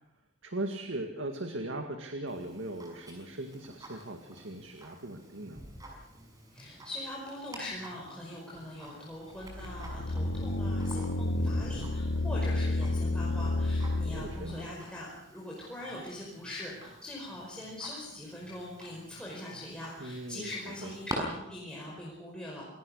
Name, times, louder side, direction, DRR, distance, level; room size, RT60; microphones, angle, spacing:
voice 1, 0.4-5.6 14.1-14.7 20.0-20.9, right 1 dB, 75° right, 5 dB, 2.1 m, -39 dB
Tick-tock, 2.3-21.2, right 1 dB, 20° right, 6.1 m, -49 dB
voice 2, 6.5-22.6, left 1 dB, 5° left, -5 dB, 5.1 m, -42 dB
sound 1, 9.4-14.5, left 2 dB, 75° left, 1.7 m, -30 dB
27.5 x 19.0 x 6.6 m, 0.82 s
head